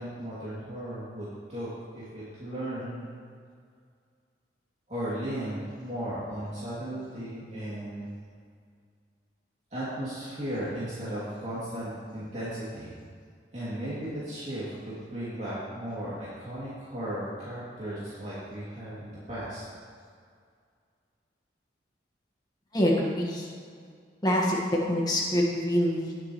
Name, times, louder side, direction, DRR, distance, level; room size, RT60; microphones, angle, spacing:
voice 1, 0.0-3.0 4.9-8.1 9.7-13.0 13.5-19.6, right 1 dB, 35° right, -11 dB, 2.8 m, -36 dB
voice 2, 22.7-23.5 24.2-24.6 24.9-26.1, equal, 20° left, -3 dB, 1.7 m, -25 dB
19.5 x 7.4 x 3.2 m, 2.1 s
head